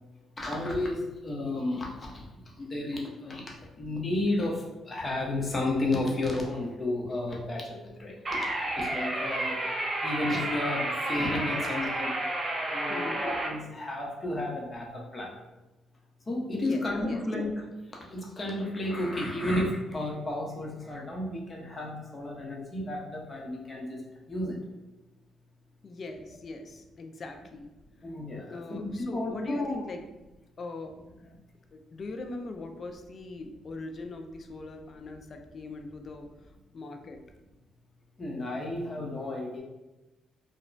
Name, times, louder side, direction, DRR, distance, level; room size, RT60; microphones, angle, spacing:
voice 1, 0.4-2.2 2.6-3.4 3.8-8.1 8.8-9.6 10.0-12.1 12.7-15.3 16.3-17.6 18.1-24.0 24.3-24.5 28.0-28.9 29.1-29.8 31.2-31.3 38.2-39.6, left 1 dB, 30° left, -2 dB, 0.7 m, -32 dB
sound 1, 8.2-13.5, right 1 dB, 35° right, 0.5 m, -31 dB
voice 2, 12.9-13.2 16.6-17.2 25.8-27.7 28.5-30.0 30.6-31.1 31.7-36.3 36.7-37.2, left 3 dB, 45° left, 5 dB, 0.3 m, -40 dB
3.0 x 2.1 x 2.5 m, 1.0 s
cardioid pair, 90°, 0 cm